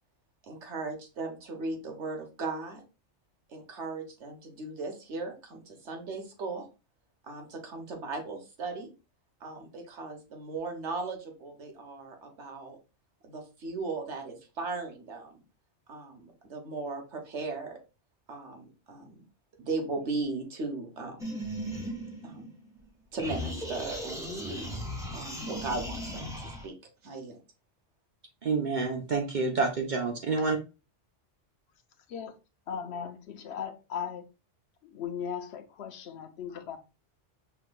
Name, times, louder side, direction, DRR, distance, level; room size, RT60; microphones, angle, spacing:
voice 1, 0.4-2.8 3.5-6.7 7.2-8.9 9.4-12.8 13.2-15.4 15.9-17.8 18.3-19.2 19.6-21.3 22.2-22.5 23.1-24.8 25.1-26.7 27.0-27.4, right 3 dB, 80° right, 3 dB, 1.3 m, -37 dB
sound 1, 21.2-22.8 23.2-26.7, equal, 5° right, 0.8 m, -37 dB
voice 2, 28.4-30.6, right 4 dB, 50° right, 3 dB, 0.7 m, -28 dB
voice 3, 32.7-34.2 34.8-36.8, left 7 dB, 70° left, 8 dB, 0.8 m, -37 dB
5.8 x 2.9 x 2.2 m, 0.31 s
omnidirectional pair, 1.2 m